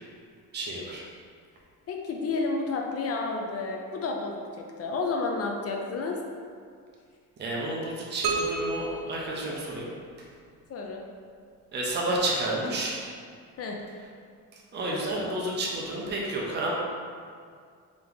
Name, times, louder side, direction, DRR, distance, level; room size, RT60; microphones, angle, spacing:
voice 1, 0.5-1.0 7.4-9.9 10.2-10.3 11.7-13.0 14.5-16.7, right 1 dB, 30° right, -3 dB, 0.7 m, -31 dB
voice 2, 1.9-6.2 10.7-11.0 12.1-12.2 13.6-13.8, left 3 dB, 45° left, 1 dB, 0.5 m, -31 dB
sound 1, 8.2-10.1, right 3 dB, 65° right, 0.7 m, -32 dB
3.6 x 2.9 x 3.8 m, 2.2 s
cardioid pair, 135°, 35 cm